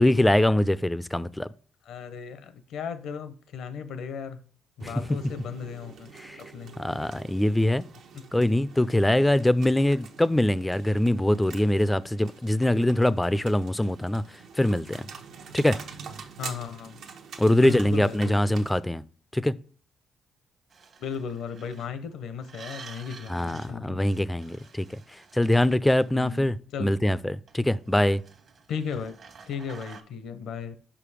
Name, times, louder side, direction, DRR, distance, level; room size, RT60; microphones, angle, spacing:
voice 1, 0.0-1.5 4.8-4.9 6.2-6.4 6.8-7.8 8.3-14.2 14.6-15.1 15.5-15.8 17.4-19.0 19.3-19.5 23.3-25.0 25.3-28.2, left 1 dB, 10° left, 0.4 m, -23 dB
voice 2, 1.9-4.4 4.8-6.1 6.4-6.8 8.1-8.2 16.4-17.0 17.5-18.6 21.0-24.1 26.1-27.0 28.7-29.2 29.5-30.7, left 6 dB, 75° left, 0.8 m, -36 dB
sound 1, 4.8-18.8, right 6 dB, 75° right, 0.9 m, -46 dB
sound 2, 20.7-21.9 22.4-23.7 24.0-26.4 27.5-30.0, right 5 dB, 55° right, 1.2 m, -49 dB
5.3 x 5.0 x 4.9 m
cardioid pair, 90°, 0 cm